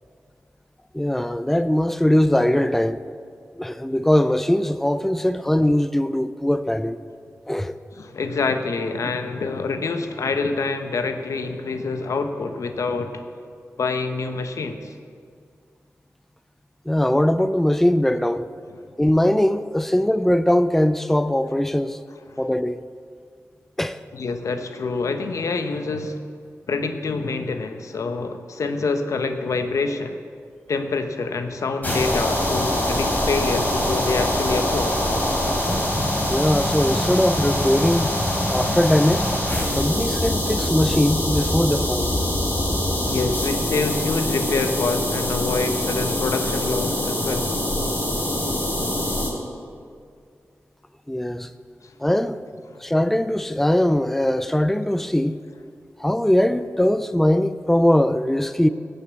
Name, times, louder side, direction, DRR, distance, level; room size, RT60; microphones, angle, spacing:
voice 1, 0.9-3.0 3.6-7.0 7.5-7.8 16.9-18.5 19.0-22.0 22.4-22.8 23.8-24.0 36.3-38.1 38.5-39.3 39.7-42.2 51.1-51.5 52.0-52.4 52.8-55.4 56.0-58.7, left 1 dB, 5° left, 0.5 m, -20 dB
voice 2, 8.0-13.2 13.8-14.9 24.1-26.2 26.7-30.2 30.7-35.0 43.1-47.5 51.8-51.9, left 4 dB, 80° left, 0.9 m, -26 dB
sound 1, 31.8-49.3, left 1 dB, 30° left, 3.8 m, -24 dB
16.5 x 6.7 x 7.0 m
cardioid pair, 65°, 5 cm